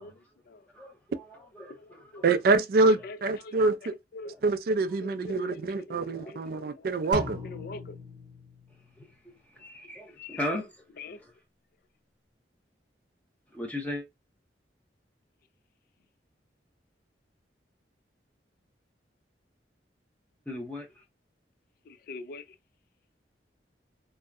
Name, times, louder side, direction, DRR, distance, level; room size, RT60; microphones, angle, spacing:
voice 1, 0.0-0.7 1.7-2.2 2.8-4.4 5.0-6.9 7.2-8.0 10.2-10.6 11.0-11.2 21.9-22.6, left 3 dB, 55° left, 0.4 m, -44 dB
voice 2, 0.7-2.2 4.2-4.4 6.0-6.3 6.8-7.0 9.0-10.7 11.1-11.3 13.5-14.0 20.5-21.0, left 1 dB, 10° left, 0.7 m, -38 dB
voice 3, 2.2-3.9 4.4-7.4, right 3 dB, 55° right, 0.3 m, -25 dB
sound 1, 7.1-9.1, left 1 dB, 25° right, 0.8 m, -38 dB
2.6 x 2.1 x 2.3 m
head